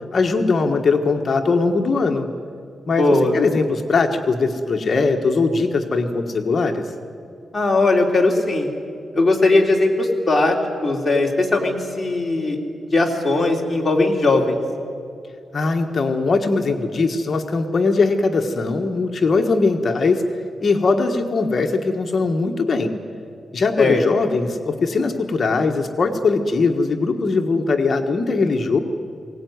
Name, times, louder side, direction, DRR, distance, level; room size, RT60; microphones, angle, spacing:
voice 1, 0.1-2.3 2.9-6.9 15.5-20.2 20.6-22.9 23.5-28.8, left 4 dB, 40° left, 5 dB, 1.4 m, -20 dB
voice 2, 3.0-3.3 7.5-8.7 9.1-10.6 10.8-12.6 12.9-14.6 23.8-24.0, left 2 dB, 15° left, -1 dB, 3.1 m, -18 dB
22.5 x 18.0 x 9.5 m, 2.4 s
wide cardioid pair, 160°, 0 cm